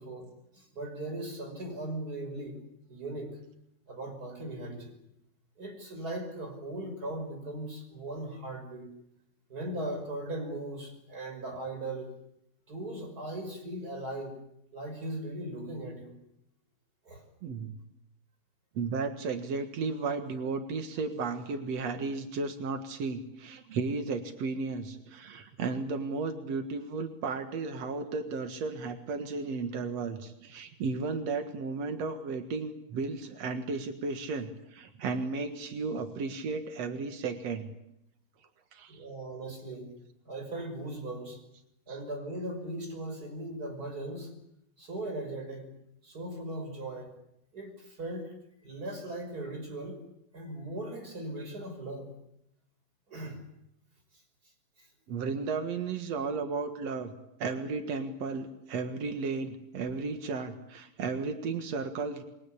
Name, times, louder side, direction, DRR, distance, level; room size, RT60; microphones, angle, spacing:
voice 1, 0.0-2.6 2.9-3.4 3.9-5.0 5.6-8.9 9.5-12.1 12.7-14.4 14.7-16.1 17.0-17.2 38.9-40.0 40.3-41.4 41.9-44.3 44.8-45.7 46.0-47.1 47.5-48.3 48.6-50.0 50.3-52.1 53.1-53.4 54.8-54.9, right 1 dB, 20° right, 5 dB, 5.5 m, -38 dB
voice 2, 17.4-17.7 18.7-37.7 38.7-39.0 41.9-42.0 55.1-57.1 57.4-62.2, right 4 dB, 80° right, 7 dB, 1.5 m, -34 dB
27.0 x 22.5 x 8.5 m, 0.80 s
omnidirectional pair, 5.7 m